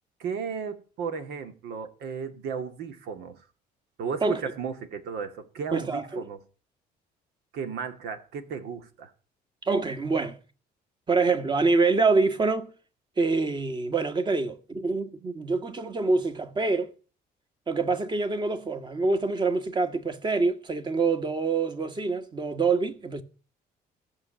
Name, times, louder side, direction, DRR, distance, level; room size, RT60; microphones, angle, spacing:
voice 1, 0.2-3.4 4.0-6.4 7.5-9.1, right 6 dB, 75° right, 2.3 m, -34 dB
voice 2, 5.7-6.2 9.6-10.4 11.1-12.7 13.2-16.9 17.7-23.2, right 3 dB, 25° right, 1.6 m, -26 dB
15.0 x 6.7 x 8.9 m
cardioid pair, 110°, 17 cm